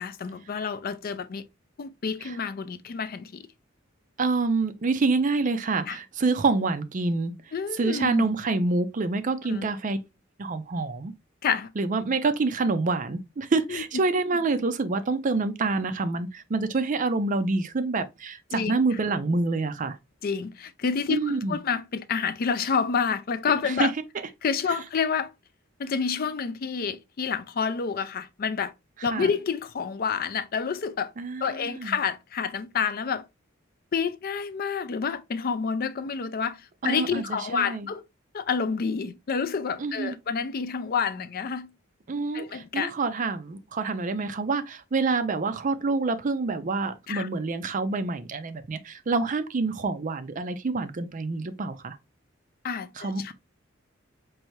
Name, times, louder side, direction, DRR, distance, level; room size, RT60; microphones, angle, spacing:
voice 1, 0.0-1.5 1.8-3.5 5.9-6.0 7.5-8.3 9.5-9.7 11.4-11.7 13.7-13.8 18.5-18.7 20.2-23.9 24.4-25.3 25.8-28.7 29.0-31.1 31.4-33.2 33.9-38.0 38.3-41.7 42.3-42.9 47.1-47.3 52.6-53.3, left 6 dB, 45° left, 0.4 m, -28 dB
voice 2, 4.2-7.3 7.8-10.0 10.4-11.1 11.8-20.0 21.1-21.6 23.6-23.9 29.0-29.3 31.2-31.9 36.8-37.9 39.8-40.1 42.1-52.0 53.0-53.2, right 3 dB, 40° right, 0.5 m, -27 dB
4.6 x 2.7 x 3.0 m
head